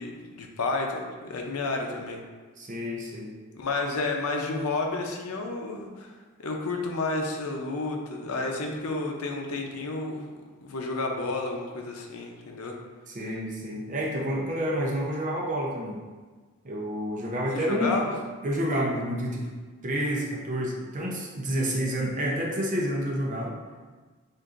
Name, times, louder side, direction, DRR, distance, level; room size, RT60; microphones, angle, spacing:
voice 1, 0.0-2.2 3.5-6.1 6.4-10.3 10.6-12.8 17.5-18.2, left 3 dB, 85° left, 1 dB, 0.7 m, -31 dB
voice 2, 2.6-3.3 13.1-16.0 16.6-18.0 18.4-19.5 19.8-23.5, equal, 35° right, -2 dB, 0.6 m, -29 dB
7.5 x 2.6 x 2.5 m, 1.4 s
head